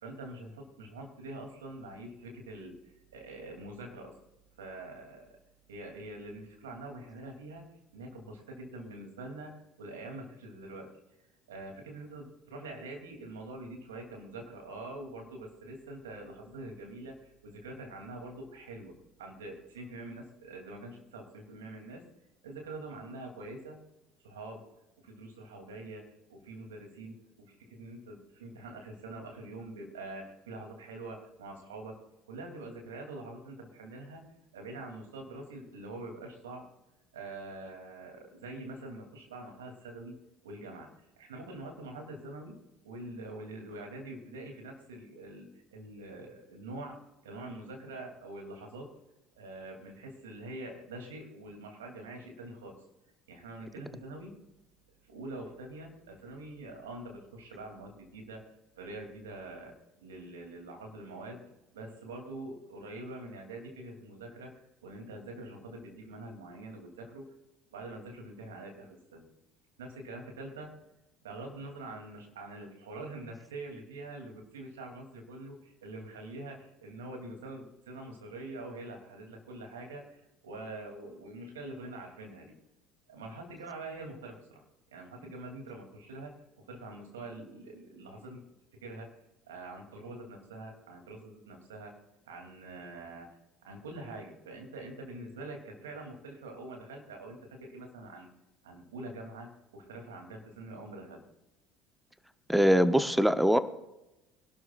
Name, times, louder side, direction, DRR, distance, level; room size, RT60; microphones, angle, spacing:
voice 1, 0.0-4.2 4.6-5.4 5.7-7.7 7.9-10.9 11.5-22.0 22.4-23.8 24.2-24.7 25.0-32.0 32.3-34.2 34.5-36.7 37.1-40.2 40.4-42.6 42.8-48.9 49.4-52.8 53.3-54.4 55.1-67.3 67.7-69.3 69.8-70.8 71.2-82.5 83.1-84.6 84.9-88.4 88.8-89.1 89.5-92.0 92.2-93.3 93.6-98.3 98.6-101.2, right 2 dB, 85° right, 2 dB, 2.9 m, -45 dB
voice 2, 102.5-103.6, equal, 5° right, 11 dB, 0.9 m, -22 dB
24.0 x 12.5 x 2.5 m, 0.95 s
hypercardioid pair, 65°, 0 cm